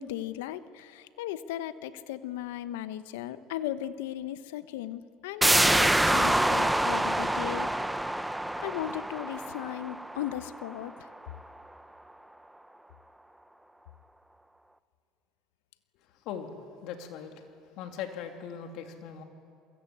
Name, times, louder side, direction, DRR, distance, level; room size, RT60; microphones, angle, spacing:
voice 1, 0.0-7.7 8.6-11.1, left 12 dB, 85° left, 13 dB, 1.0 m, -37 dB
sound 1, 5.4-10.9 11.2-11.3, right 1 dB, 5° right, 0.8 m, -26 dB
voice 2, 16.8-17.5 17.8-19.2, left 8 dB, 70° left, 4 dB, 3.0 m, -39 dB
28.0 x 22.5 x 8.6 m, 2.5 s
supercardioid pair, 95°, 0 cm